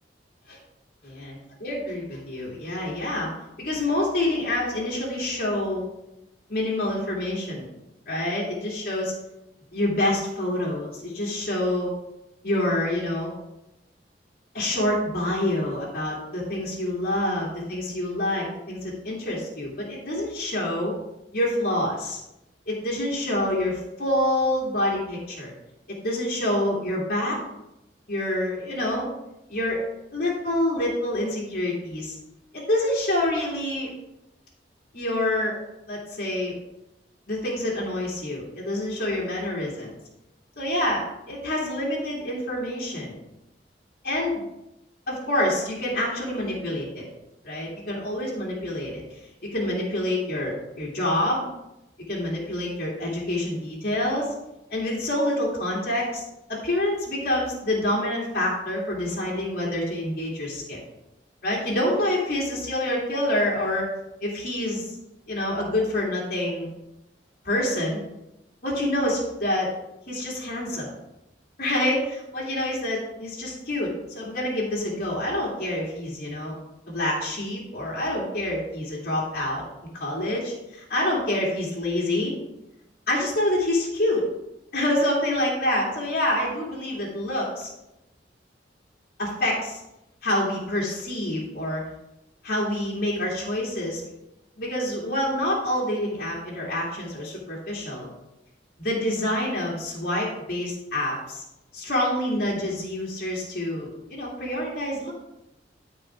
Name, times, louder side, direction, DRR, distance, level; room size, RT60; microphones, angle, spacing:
voice 1, 1.6-3.3 3.6-5.8 6.5-7.7 8.1-9.1 9.7-11.9 12.4-13.3 14.5-20.9 21.3-22.2 22.7-25.5 25.9-27.4 28.1-29.1 29.5-29.8 30.1-32.2 32.5-33.9 34.9-35.5 35.9-36.5 37.3-40.0 40.6-43.2 44.0-44.4 45.1-47.0 47.4-49.0 49.5-51.5 52.1-54.3 54.7-56.2 56.5-60.8 61.4-63.9 64.2-64.9 65.3-66.7 67.4-68.0 68.6-69.7 70.1-70.9 71.6-76.5 76.9-79.6 79.9-82.3 83.1-84.2 84.7-87.7 89.2-89.8 90.2-91.8 92.4-94.1 94.6-98.1 98.8-101.4 101.7-105.1, left 1 dB, 55° left, -5 dB, 2.6 m, -27 dB
13.0 x 4.8 x 3.6 m, 0.92 s
head